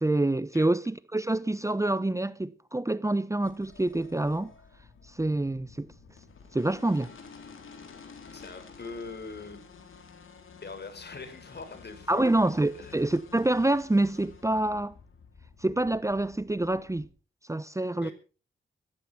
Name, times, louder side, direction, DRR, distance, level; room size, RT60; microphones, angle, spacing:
voice 1, 0.0-4.5 5.1-5.9 6.5-7.1 12.1-14.9 15.6-17.1 17.5-18.1, right 2 dB, 15° right, 0.9 m, -27 dB
sound 1, 3.4-17.1, left 5 dB, 80° left, 4.2 m, -51 dB
voice 2, 8.3-9.6 10.6-13.1 18.0-18.1, left 4 dB, 55° left, 4.9 m, -42 dB
14.5 x 14.5 x 5.9 m
cardioid pair, 60°, 21 cm